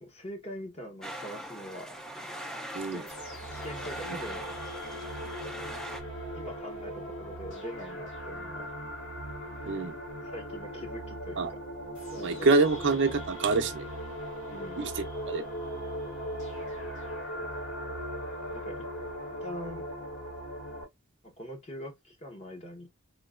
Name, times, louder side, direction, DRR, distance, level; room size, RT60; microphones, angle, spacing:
voice 1, 0.0-1.9 2.7-3.1 3.5-4.5 6.3-8.7 10.2-11.6 12.1-12.5 14.5-14.9 18.5-18.9 19.4-19.8 21.2-22.9, equal, 30° left, 1.0 m, -43 dB
sound 1, 1.0-6.0, right 1 dB, ahead, 0.5 m, -41 dB
sound 2, 3.1-20.8, equal, 80° left, 2.7 m, -39 dB
voice 2, 9.6-9.9 11.4-11.5 12.2-13.9 14.8-15.4, right 3 dB, 60° right, 0.6 m, -26 dB
3.8 x 2.8 x 2.4 m
head